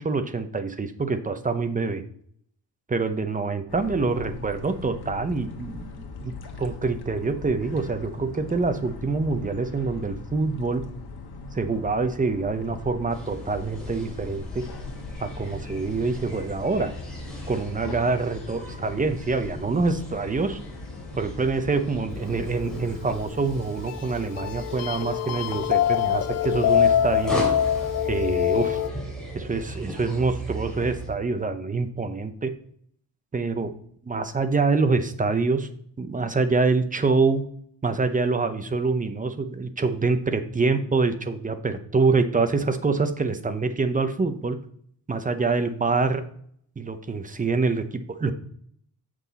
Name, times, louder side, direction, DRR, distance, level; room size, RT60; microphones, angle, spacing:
voice 1, 0.0-2.0 2.9-6.3 6.6-10.8 11.5-14.6 15.2-16.9 17.5-20.6 21.2-27.4 28.1-28.8 29.3-32.5 33.3-33.7 34.1-35.7 36.0-37.4 37.8-44.6 45.1-46.2 46.8-48.3, right 4 dB, 20° right, 9 dB, 0.7 m, -25 dB
sound 1, 3.7-23.3, left 4 dB, 80° left, 1.4 m, -40 dB
sound 2, 13.1-31.1, right 1 dB, ahead, 2.8 m, -37 dB
sound 3, 22.6-28.9, left 10 dB, 45° left, 0.5 m, -25 dB
7.5 x 6.1 x 4.0 m, 0.64 s
wide cardioid pair, 135°, 37 cm